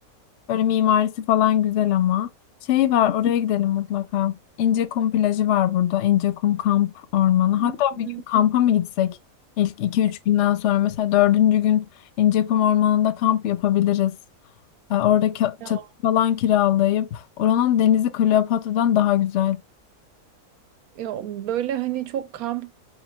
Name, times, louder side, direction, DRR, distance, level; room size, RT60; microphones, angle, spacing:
voice 1, 0.5-2.3 2.7-9.2 9.6-11.9 12.2-14.1 14.9-19.6, left 11 dB, 65° left, 0.8 m, -21 dB
voice 2, 7.6-8.2 15.6-15.9 21.0-22.7, right 12 dB, 80° right, 1.1 m, -30 dB
5.1 x 3.3 x 2.3 m
omnidirectional pair, 1.5 m